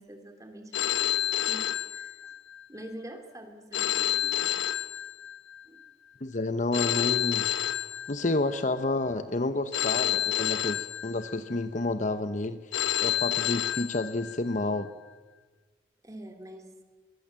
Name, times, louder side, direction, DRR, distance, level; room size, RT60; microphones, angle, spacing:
voice 1, 0.0-2.3 2.7-4.5 5.6-5.8 7.8-8.0 16.0-16.7, right 1 dB, 20° right, 5 dB, 2.9 m, -46 dB
Telephone, 0.7-2.6 3.7-5.6 6.7-8.6 9.7-11.6 12.7-14.6, left 11 dB, 85° left, 1.1 m, -29 dB
voice 2, 6.2-7.4 8.1-12.7 13.0-14.9, left 2 dB, 40° left, 11 dB, 0.9 m, -30 dB
23.0 x 22.5 x 7.6 m, 1.4 s
head